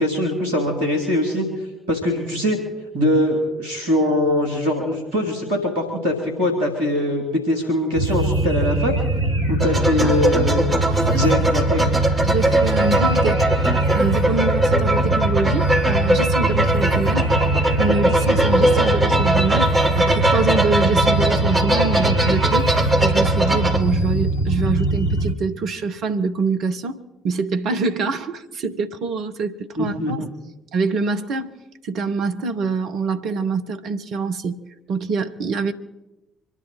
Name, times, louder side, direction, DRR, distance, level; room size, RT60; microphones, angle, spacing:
voice 1, 0.0-1.5 1.9-2.6 2.9-8.9 9.5-10.6 11.1-11.8 29.8-30.1, left 1 dB, 80° right, 3.0 m, -22 dB
sound 1, 7.9-25.3, right 2 dB, 80° left, 1.3 m, -22 dB
sound 2, 9.6-23.8, right 1 dB, 30° right, 2.8 m, -21 dB
voice 2, 10.9-11.2 12.2-13.4 13.9-17.3 17.8-22.7 23.0-27.0 27.2-30.3 30.7-31.6 31.8-34.6 34.9-35.7, right 4 dB, 60° right, 1.0 m, -25 dB
25.0 x 11.0 x 4.3 m
figure-of-eight pair, 45°, 0 cm